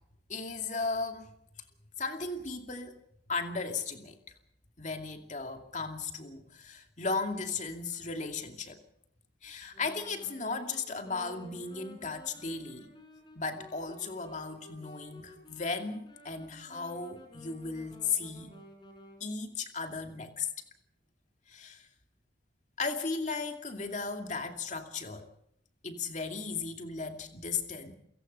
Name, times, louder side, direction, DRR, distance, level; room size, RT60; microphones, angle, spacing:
voice 1, 0.3-1.3 2.0-3.0 3.3-4.2 4.8-8.8 9.4-12.9 13.4-18.5 19.2-20.5 21.5-21.9 22.8-25.3 25.8-27.9, left 4 dB, 40° left, 5 dB, 2.5 m, -36 dB
Wind instrument woodwind instrument, 9.7-19.2, left 1 dB, 25° left, 5.3 m, -53 dB
29.0 x 17.0 x 5.5 m, 0.72 s
head